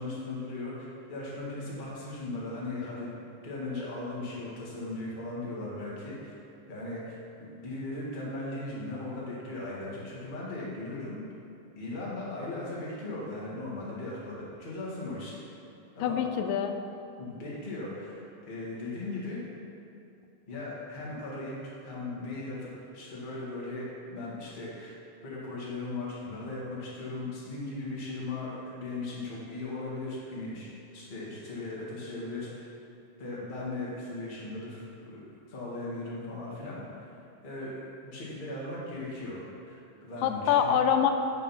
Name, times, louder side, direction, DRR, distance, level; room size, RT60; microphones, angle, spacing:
voice 1, 0.0-6.4 6.7-11.2 11.7-15.4 15.9-16.3 17.2-19.4 20.5-22.7 22.9-24.9 25.2-32.6 33.2-35.2 35.5-37.2 37.4-40.8, left 2 dB, 25° left, -6 dB, 1.2 m, -38 dB
voice 2, 16.0-16.7 40.2-41.1, left 8 dB, 90° left, 6 dB, 2.3 m, -25 dB
8.3 x 6.2 x 5.7 m, 2.7 s
omnidirectional pair, 3.9 m